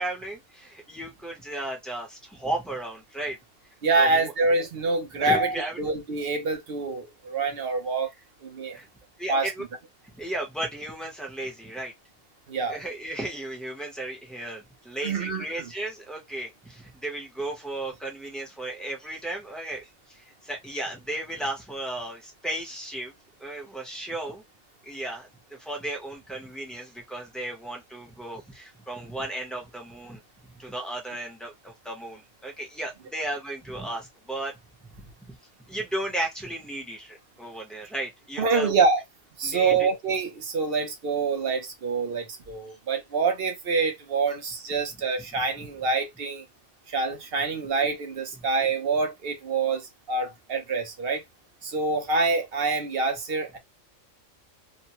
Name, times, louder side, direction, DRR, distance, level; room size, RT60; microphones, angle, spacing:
voice 1, 0.0-3.4 4.0-4.2 5.2-6.0 8.7-8.9 9.2-9.6 10.0-11.9 12.7-23.1 23.4-24.4 24.8-30.2 30.6-34.6 35.3-35.4 35.7-38.7 39.4-39.9, right 1 dB, ahead, 0.8 m, -35 dB
voice 2, 3.8-8.1 8.4-8.8 9.3-9.5 12.5-12.8 15.0-15.7 38.4-39.0 39.4-46.4 46.9-51.2 51.6-53.6, right 4 dB, 55° right, 0.9 m, -26 dB
2.9 x 2.2 x 2.9 m
omnidirectional pair, 1.3 m